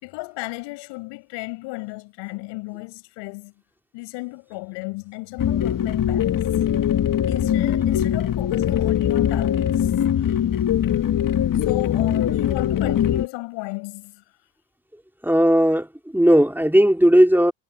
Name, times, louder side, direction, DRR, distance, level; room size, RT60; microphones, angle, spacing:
voice 1, 0.0-3.5 3.9-6.4 7.3-9.9 10.2-10.4 11.5-14.2, left 25 dB, 80° left, 6.0 m, -34 dB
sound 1, 5.4-13.3, left 10 dB, 50° left, 1.7 m, -21 dB
voice 2, 15.2-17.5, equal, 5° right, 4.2 m, -16 dB
hypercardioid pair, 55°, 42 cm